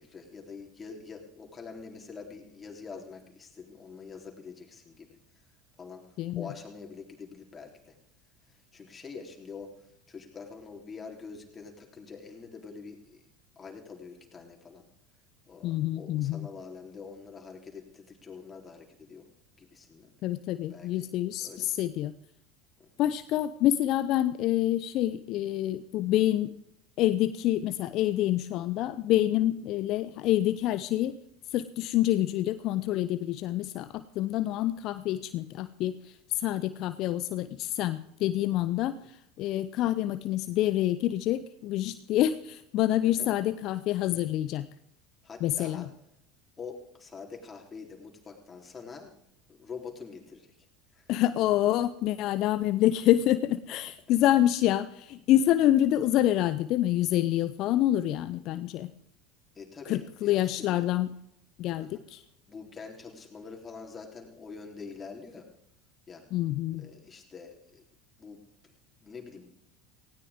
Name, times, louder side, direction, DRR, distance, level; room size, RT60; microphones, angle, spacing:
voice 1, 0.0-5.1 5.8-6.0 6.3-8.0 8.5-13.2 13.6-14.8 15.5-19.3 19.5-20.1 20.7-21.1 21.4-21.7 22.8-22.9 38.8-38.9 43.2-43.3 45.2-45.9 46.6-49.2 49.6-50.5 50.9-51.1 59.6-60.9 61.8-62.0 62.5-65.5 66.1-66.2 66.8-67.8 68.2-68.4 69.0-69.5, left 5 dB, 25° left, 0 dB, 3.5 m, -45 dB
voice 2, 6.2-6.5 15.6-16.5 20.2-22.1 23.0-26.5 27.0-31.1 31.5-38.9 39.4-44.7 45.4-45.8 51.1-58.9 59.9-61.1 61.6-62.2 66.3-66.8, left 13 dB, 55° left, 13 dB, 0.6 m, -27 dB
18.5 x 16.5 x 3.6 m, 0.76 s
hypercardioid pair, 75°, 0 cm